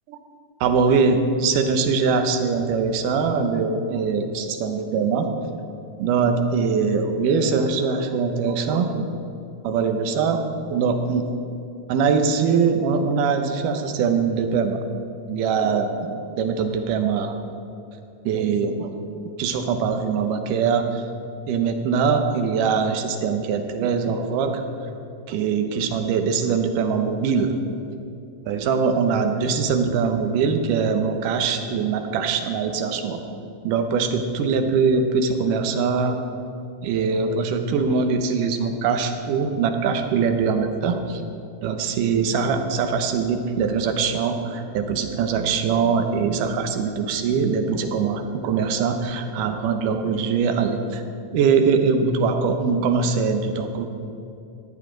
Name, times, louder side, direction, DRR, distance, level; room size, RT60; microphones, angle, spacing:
voice 1, 0.6-5.3 6.0-9.1 9.6-10.4 10.7-11.3 11.9-14.8 15.3-17.3 18.3-18.9 19.4-21.0 21.5-24.6 25.3-27.5 28.5-33.2 33.6-36.2 36.8-41.2 41.6-51.0 51.3-53.9, right 5 dB, 80° right, 6 dB, 2.4 m, -22 dB
14.0 x 9.8 x 3.8 m, 2.7 s
omnidirectional pair, 3.7 m